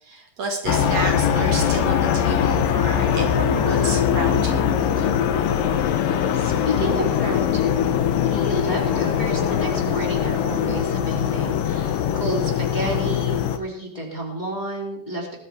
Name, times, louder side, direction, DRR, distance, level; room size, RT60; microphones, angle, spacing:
voice 1, 0.0-5.1, right 2 dB, 55° right, 1 dB, 3.0 m, -30 dB
sound 1, 0.7-13.6, left 8 dB, 80° left, 2.8 m, -21 dB
voice 2, 6.3-8.0 8.2-15.4, right 1 dB, 15° left, -2 dB, 2.8 m, -31 dB
20.5 x 13.0 x 3.5 m, 0.79 s
omnidirectional pair, 3.9 m